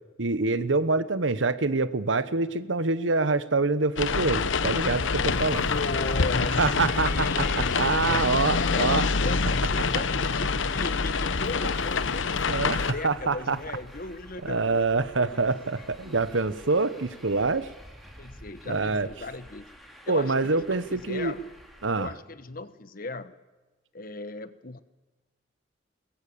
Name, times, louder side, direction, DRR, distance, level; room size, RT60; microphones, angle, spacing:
voice 1, 0.2-5.7 6.6-9.1 12.5-13.6 14.4-17.7 18.7-19.1 20.1-21.3 21.8-22.1, right 3 dB, 85° right, 14 dB, 1.1 m, -26 dB
sound 1, 4.0-12.9, left 4 dB, 85° left, 0.9 m, -26 dB
Traffic noise roadway noise, 5.3-22.1, equal, ahead, 2.9 m, -50 dB
voice 2, 5.7-8.3 8.5-12.4 12.7-14.9 15.2-15.6 16.0-16.2 18.2-19.7 20.1-21.4 22.0-23.3 23.9-24.8, left 3 dB, 50° left, 13 dB, 1.2 m, -37 dB
22.0 x 21.0 x 8.8 m, 1.2 s
head